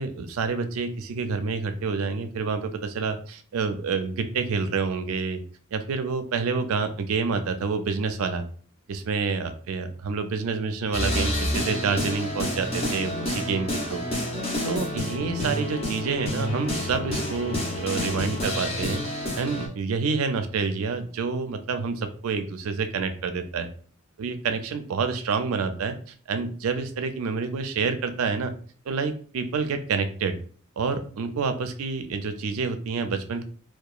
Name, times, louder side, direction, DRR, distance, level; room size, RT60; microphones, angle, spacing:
voice 1, 0.0-5.4 5.7-8.4 8.9-14.0 14.6-19.0 19.4-23.7 24.2-26.0 26.3-28.5 28.9-30.4 30.8-33.4, right 4 dB, 80° right, 8 dB, 0.4 m, -28 dB
sound 1, 10.9-19.7, left 1 dB, 30° left, 0.6 m, -29 dB
2.8 x 2.2 x 2.3 m, 0.44 s
head